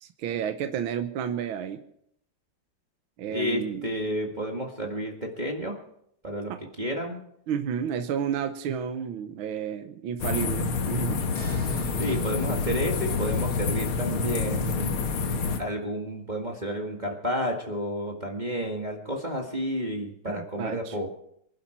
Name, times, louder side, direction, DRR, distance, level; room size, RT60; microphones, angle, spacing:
voice 1, 0.0-1.8 3.2-3.9 6.5-6.6 7.5-11.3 20.3-21.0, right 8 dB, 70° right, 7 dB, 1.8 m, -31 dB
voice 2, 3.3-5.8 6.2-7.2 12.0-15.1 15.6-21.1, equal, 20° right, 0 dB, 1.8 m, -31 dB
sound 1, 10.2-15.6, left 5 dB, 75° left, 2.1 m, -28 dB
sound 2, 11.4-14.2, right 2 dB, 50° right, 2.5 m, -42 dB
25.5 x 11.5 x 4.4 m, 0.73 s
omnidirectional pair, 2.4 m